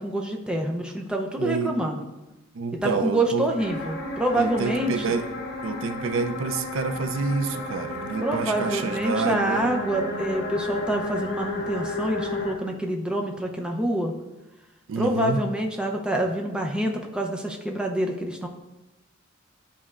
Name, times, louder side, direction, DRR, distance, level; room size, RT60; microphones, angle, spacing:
voice 1, 0.0-2.0 2.7-5.1 8.2-14.1 15.0-18.5, right 1 dB, 5° right, 1 dB, 0.5 m, -26 dB
voice 2, 1.3-1.8 2.6-3.5 4.3-5.3 5.6-9.6 14.9-15.4, right 4 dB, 70° right, 9 dB, 0.4 m, -28 dB
sound 1, 3.6-12.5, left 2 dB, 55° left, 0.9 m, -33 dB
10.5 x 4.2 x 2.4 m, 1.0 s
head